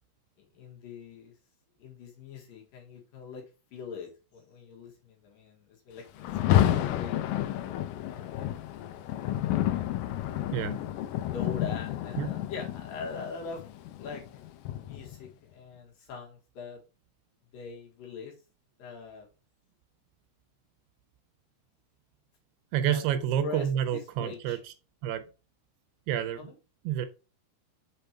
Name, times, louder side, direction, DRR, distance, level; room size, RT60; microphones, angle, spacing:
voice 1, 0.4-1.3 1.8-3.4 3.7-7.2 8.1-9.4 11.3-13.6 14.0-14.4 14.8-16.8 17.5-18.3 18.8-19.3 22.9-23.0 23.4-24.6 26.4-26.5, left 5 dB, 65° left, 0 dB, 3.0 m, -42 dB
Rain, 6.2-15.3, left 12 dB, 85° left, 2.0 m, -30 dB
voice 2, 22.7-24.6 25.0-25.2 26.1-26.5 26.8-27.1, right 10 dB, 80° right, 10 dB, 2.7 m, -28 dB
6.9 x 4.4 x 4.4 m, 0.31 s
omnidirectional pair, 4.8 m